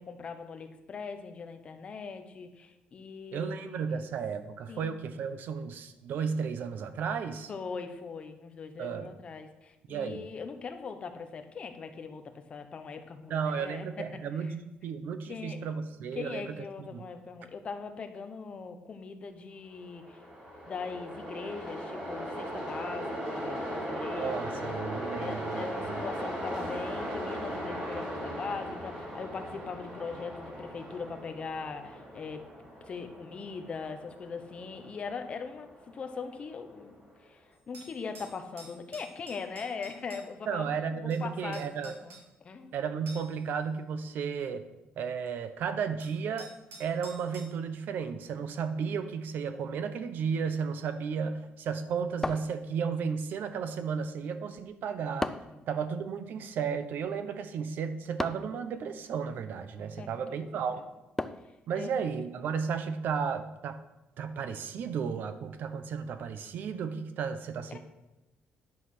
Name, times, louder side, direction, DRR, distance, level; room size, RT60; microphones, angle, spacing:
voice 1, 0.0-4.0 4.7-4.9 7.5-12.2 12.5-14.1 14.4-14.5 15.3-15.6 16.1-20.2 20.7-32.4 32.9-35.7 35.9-42.7 55.5-55.6 60.0-60.6 61.7-61.9 67.7-67.8, left 5 dB, 30° left, 7 dB, 0.9 m, -41 dB
voice 2, 3.3-7.5 8.8-9.1 9.9-10.3 13.3-17.1 24.2-26.0 40.5-41.9 42.7-44.6 45.0-46.5 46.8-55.3 55.7-60.8 61.7-63.8 64.2-67.8, right 6 dB, 60° right, 10 dB, 0.9 m, -34 dB
Train, 19.8-37.0, equal, 25° right, 3.5 m, -38 dB
sound 1, 37.5-40.2 41.1-41.2 41.5-42.2 43.1-43.4 44.0-44.1 45.3-45.4 46.0-47.5, right 2 dB, 80° right, 3.4 m, -50 dB
sound 2, 52.2-53.1 55.2-55.7 58.2-58.6 61.2-61.6, left 2 dB, 10° left, 0.3 m, -35 dB
10.5 x 5.7 x 6.5 m, 0.99 s
cardioid pair, 175°, 4 cm